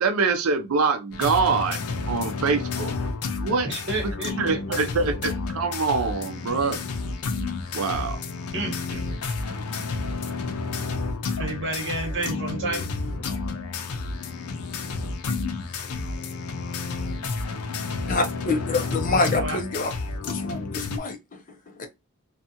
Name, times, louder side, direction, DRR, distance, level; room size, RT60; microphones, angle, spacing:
voice 1, 0.0-1.8 2.1-2.9 3.4-3.7 4.4-6.8 7.7-8.2, right 4 dB, 75° right, 0.5 m, -24 dB
sound 1, 1.1-21.0, left 4 dB, 85° left, 0.5 m, -31 dB
voice 2, 3.6-4.6 8.5-9.1 11.4-12.9 19.1-19.6, right 2 dB, 60° right, 1.1 m, -30 dB
voice 3, 18.1-19.9 20.2-21.9, left 3 dB, 40° left, 0.5 m, -27 dB
2.7 x 2.3 x 2.7 m
head